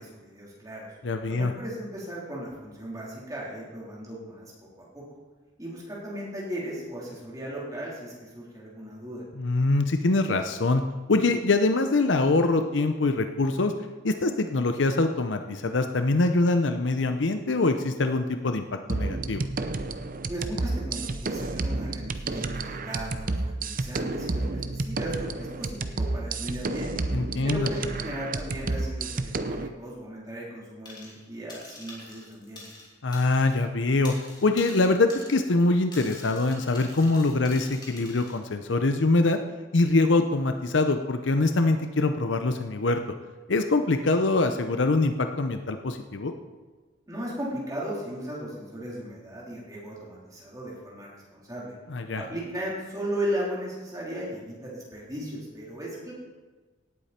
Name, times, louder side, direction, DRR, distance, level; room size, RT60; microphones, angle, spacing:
voice 1, 0.0-0.9 1.3-4.5 4.8-5.0 5.6-9.2 20.3-27.0 27.4-32.6 47.1-51.7 52.1-56.1, equal, 20° right, -5 dB, 3.8 m, -36 dB
voice 2, 1.0-1.5 9.4-10.8 11.1-13.7 14.0-18.6 18.9-19.5 27.1-27.7 33.0-34.1 34.4-39.4 39.7-43.0 43.5-46.3 51.9-52.2, left 2 dB, 85° left, 7 dB, 0.7 m, -24 dB
sound 1, 18.9-29.7, right 2 dB, 50° right, 0.7 m, -31 dB
sound 2, 30.9-31.2 31.5-33.6 33.9-38.4, left 2 dB, 25° left, 2.9 m, -46 dB
17.5 x 8.4 x 4.4 m, 1.3 s
head